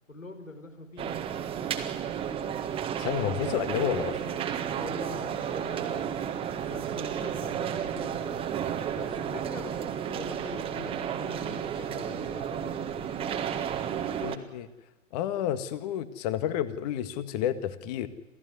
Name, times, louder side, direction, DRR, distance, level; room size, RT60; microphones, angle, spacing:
voice 1, 0.1-1.2 4.8-6.1 6.7-13.7, left 2 dB, 75° left, 7 dB, 4.9 m, -43 dB
sound 1, 1.0-14.4, right 9 dB, 15° right, 1.7 m, -32 dB
voice 2, 3.0-4.3 14.2-14.7 15.1-18.1, left 10 dB, 30° left, 13 dB, 1.8 m, -30 dB
27.5 x 16.5 x 9.6 m, 1.1 s
figure-of-eight pair, 120°, 39 cm